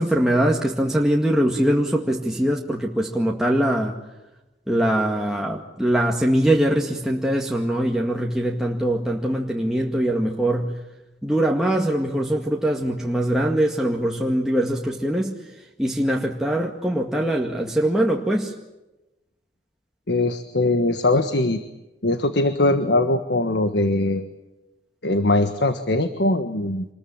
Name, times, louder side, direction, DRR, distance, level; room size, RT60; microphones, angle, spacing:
voice 1, 0.0-4.0 4.7-10.8 11.2-15.4 15.8-18.5, right 1 dB, 5° right, -1 dB, 2.0 m, -22 dB
voice 2, 20.1-21.6 22.0-24.3 25.0-26.9, left 2 dB, 75° left, 9 dB, 1.5 m, -21 dB
27.0 x 21.5 x 8.8 m, 1.0 s
head